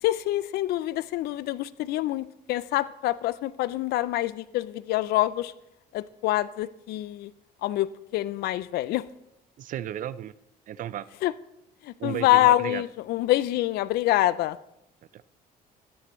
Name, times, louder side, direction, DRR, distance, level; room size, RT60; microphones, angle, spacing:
voice 1, 0.0-5.5 5.9-7.3 7.6-9.0 11.2-11.3 11.8-14.6, left 15 dB, 70° left, 17 dB, 0.4 m, -26 dB
voice 2, 9.6-10.3 10.7-11.1 12.0-12.8 15.1-15.2, right 11 dB, 50° right, 17 dB, 0.4 m, -34 dB
13.0 x 9.5 x 3.1 m, 0.83 s
cardioid pair, 110°, 17 cm